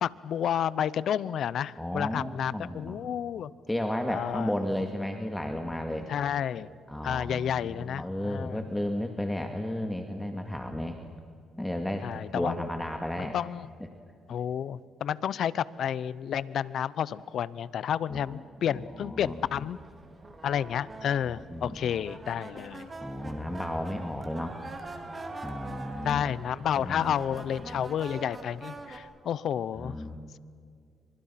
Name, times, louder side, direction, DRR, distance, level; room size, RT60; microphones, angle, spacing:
voice 1, 0.0-3.5 4.1-4.5 6.1-6.7 7.0-8.6 12.0-12.7 13.2-13.7 14.3-19.8 20.4-22.9 26.0-29.9, left 9 dB, 65° left, 19 dB, 0.8 m, -30 dB
voice 2, 1.8-3.0 3.7-6.1 6.9-11.0 11.6-13.3 18.1-18.4 18.7-19.4 21.2-22.0 23.0-24.6 25.4-26.2 26.8-27.1 27.6-27.8 29.8-30.2, left 1 dB, 5° left, 4 dB, 2.2 m, -33 dB
sound 1, 19.2-29.0, right 2 dB, 30° right, 3.7 m, -44 dB
30.0 x 25.5 x 5.9 m, 2.3 s
cardioid pair, 90°, 0 cm